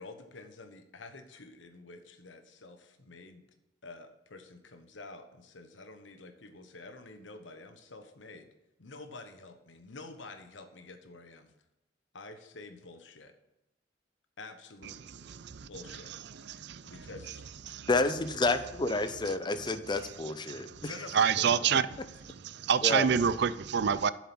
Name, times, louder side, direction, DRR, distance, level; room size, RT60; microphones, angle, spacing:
voice 1, 0.0-3.5 3.8-8.5 8.8-11.5 12.1-13.3 14.4-15.0 15.6-16.1 16.8-17.5 20.9-21.7, left 3 dB, 75° left, 1.1 m, -48 dB
voice 2, 15.2-15.7 16.4-16.9 17.7-17.9 20.5-20.8 21.1-21.8 22.4-24.1, right 7 dB, 60° right, 0.4 m, -27 dB
voice 3, 17.9-21.0 22.8-23.1, left 2 dB, 25° left, 0.6 m, -30 dB
7.6 x 7.2 x 6.1 m
head